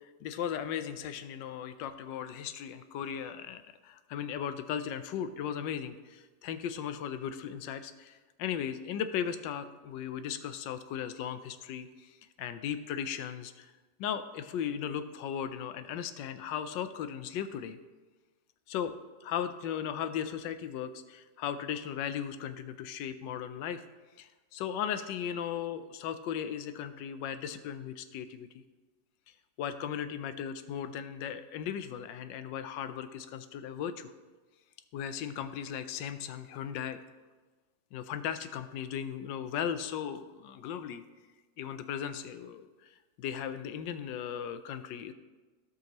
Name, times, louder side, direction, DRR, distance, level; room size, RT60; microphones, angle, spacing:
voice 1, 0.2-13.7 14.0-17.8 18.7-18.9 19.2-23.8 24.2-28.5 29.6-34.1 34.9-37.0 37.9-41.0 41.6-42.7 43.2-45.1, left 8 dB, 85° left, 11 dB, 1.3 m, -37 dB
15.5 x 5.5 x 3.0 m, 1.3 s
omnidirectional pair, 1.9 m